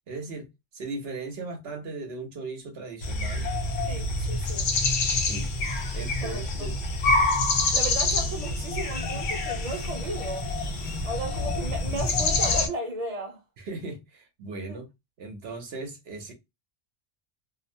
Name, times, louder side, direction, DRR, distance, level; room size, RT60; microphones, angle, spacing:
voice 1, 0.1-3.5 5.2-5.5 5.9-6.8 13.6-14.9 15.2-16.3, right 3 dB, 75° right, 0.9 m, -37 dB
sound 1, 3.0-12.7, left 3 dB, 80° left, 0.9 m, -27 dB
voice 2, 3.9-4.7 6.2-6.7 7.7-10.5 11.0-13.4 14.7-14.8, right 1 dB, 40° right, 0.8 m, -35 dB
2.5 x 2.1 x 2.5 m
omnidirectional pair, 1.1 m